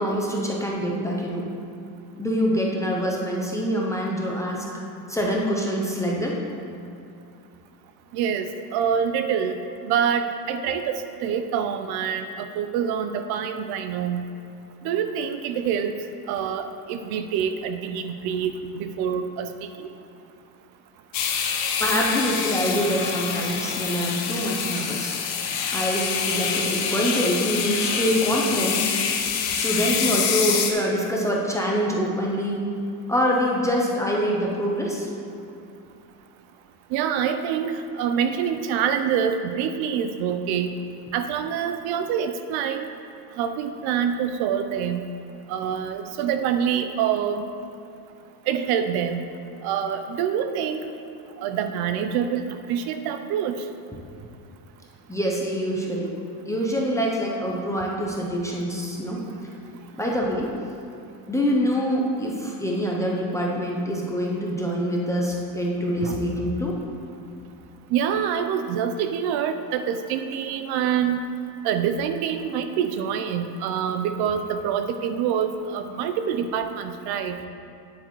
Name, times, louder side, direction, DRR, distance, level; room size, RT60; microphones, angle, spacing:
voice 1, 0.0-1.5 2.2-4.7 5.1-6.4 21.8-25.1 25.7-28.9 29.6-32.6 33.1-35.1 55.1-56.1 56.5-59.2 59.9-60.5 61.3-66.8, equal, 5° left, -3 dB, 0.5 m, -25 dB
voice 2, 8.1-9.6 9.9-14.2 14.8-15.9 16.3-18.5 18.8-19.5 36.9-40.7 41.1-42.8 43.4-45.0 45.5-47.4 48.5-49.2 49.6-50.8 51.4-53.5 66.0-66.2 67.9-71.2 71.6-77.4, right 8 dB, 55° right, 8 dB, 0.5 m, -26 dB
sound 1, 21.1-30.7, left 7 dB, 70° left, 1.1 m, -26 dB
9.3 x 7.8 x 3.1 m, 2.6 s
cardioid pair, 150°, 48 cm